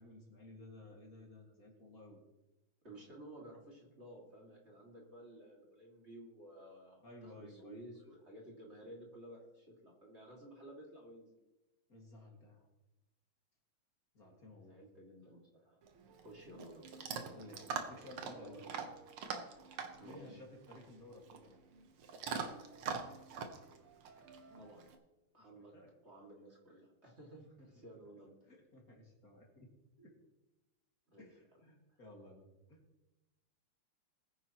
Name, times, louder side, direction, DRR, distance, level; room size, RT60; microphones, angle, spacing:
voice 1, 0.0-2.2 7.0-7.9 11.9-12.7 14.1-14.8 17.3-18.8 20.0-21.6 25.4-25.9 27.6-27.7 28.5-29.7 30.0-30.1 31.2-32.8, left 1 dB, 45° left, -1 dB, 2.5 m, -55 dB
voice 2, 2.8-11.3 14.6-15.8 16.2-16.9 20.0-20.4 24.5-24.9 25.3-25.7 26.0-28.3 31.1-31.3 31.9-32.0, right 1 dB, 30° right, -2 dB, 2.4 m, -54 dB
Chewing mastication / Dog, 15.8-24.9, right 6 dB, 90° right, 2.0 m, -44 dB
21.0 x 9.5 x 3.0 m, 1.0 s
omnidirectional pair, 2.3 m